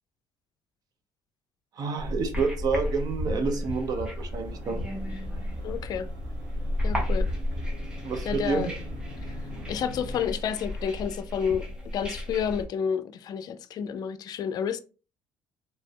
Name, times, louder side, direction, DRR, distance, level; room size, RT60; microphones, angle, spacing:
voice 1, 1.8-4.8 8.0-8.7, right 4 dB, 55° right, 0.7 m, -29 dB
sound 1, 2.0-12.6, left 1 dB, 10° right, 1.1 m, -33 dB
sound 2, 4.3-10.2, left 1 dB, 90° right, 1.2 m, -41 dB
voice 2, 5.6-6.1 6.8-7.3 8.3-8.7 9.3-9.4 9.7-11.7 11.9-14.8, left 7 dB, 55° left, 0.4 m, -30 dB
3.2 x 2.5 x 2.3 m
supercardioid pair, 85°, 8 cm